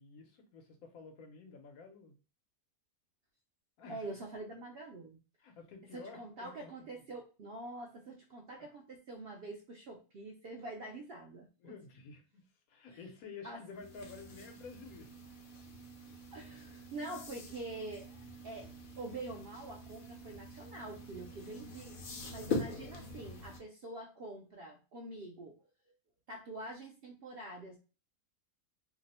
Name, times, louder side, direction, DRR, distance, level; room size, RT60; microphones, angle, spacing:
voice 1, 0.0-2.2 3.8-4.1 5.4-7.0 11.6-15.2, left 4 dB, 80° left, 5 dB, 1.2 m, -51 dB
voice 2, 3.9-5.2 5.9-11.7 12.9-13.0 13.4-13.6 16.3-22.0 22.3-25.7 26.3-27.8, right 2 dB, 65° right, 1 dB, 0.6 m, -46 dB
Cat jump, 13.7-23.6, left 3 dB, 50° left, 0.6 m, -44 dB
2.8 x 2.0 x 4.0 m, 0.33 s
omnidirectional pair, 1.5 m